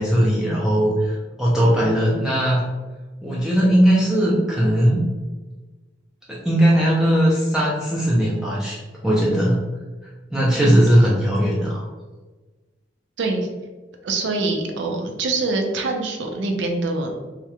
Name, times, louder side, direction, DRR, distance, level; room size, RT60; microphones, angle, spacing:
voice 1, 0.0-2.6 3.2-5.0 6.3-9.6 10.3-11.9, equal, 5° right, -6 dB, 0.3 m, -19 dB
voice 2, 13.2-13.5 14.0-17.1, right 3 dB, 80° right, 3 dB, 0.4 m, -24 dB
2.3 x 2.1 x 2.8 m, 1.2 s
head